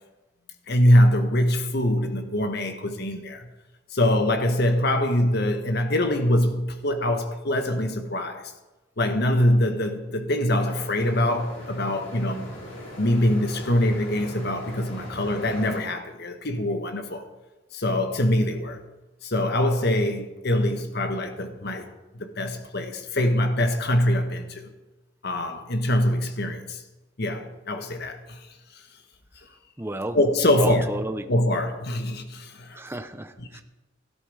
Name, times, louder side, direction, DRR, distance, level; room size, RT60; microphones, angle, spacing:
voice 1, 0.7-3.5 3.9-8.5 9.0-12.5 13.0-17.2 17.7-18.8 19.2-21.9 22.1-24.7 25.2-26.8 27.2-28.5 30.1-30.8 31.3-32.8, left 1 dB, 55° left, 1.3 m, -23 dB
sound 1, 10.6-15.8, equal, 80° left, 4.9 m, -40 dB
voice 2, 29.8-30.2 30.5-31.3 32.7-33.6, right 1 dB, 10° right, 0.8 m, -31 dB
17.5 x 12.5 x 4.9 m
head